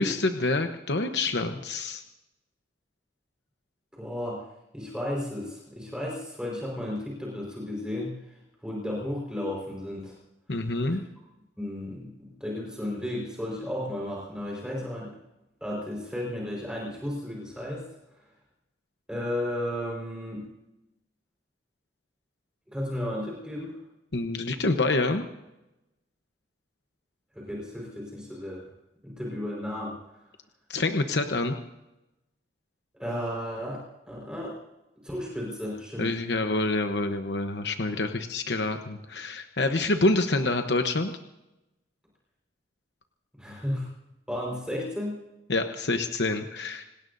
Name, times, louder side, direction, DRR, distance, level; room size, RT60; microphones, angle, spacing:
voice 1, 0.0-2.0 10.5-11.0 24.1-25.2 30.7-31.6 36.0-41.1 45.5-46.8, left 2 dB, 70° left, 6 dB, 1.0 m, -27 dB
voice 2, 3.9-4.4 4.7-8.1 8.6-10.2 11.6-15.1 15.6-17.9 19.1-20.5 22.7-23.8 27.3-28.6 29.0-30.0 32.9-34.5 35.0-36.2 43.3-43.9 44.3-45.2, left 1 dB, 5° right, -3 dB, 4.7 m, -33 dB
27.0 x 19.0 x 2.7 m, 0.94 s
head